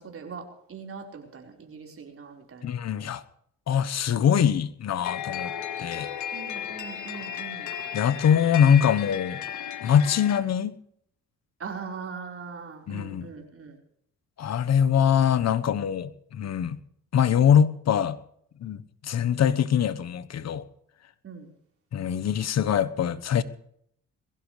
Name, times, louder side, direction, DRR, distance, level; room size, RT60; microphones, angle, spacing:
voice 1, 0.0-2.7 6.3-7.7 11.6-13.8 21.2-21.5, right 5 dB, 45° right, 2 dB, 4.7 m, -41 dB
voice 2, 2.6-3.2 3.7-5.5 5.8-6.1 7.9-9.4 9.8-10.8 12.9-13.3 14.4-16.8 17.1-18.2 18.6-20.6 21.9-23.4, left 8 dB, 60° left, 15 dB, 1.2 m, -23 dB
sound 1, 5.0-10.4, left 9 dB, 75° left, 1.6 m, -35 dB
22.0 x 16.0 x 3.3 m, 0.68 s
cardioid pair, 90°, 30 cm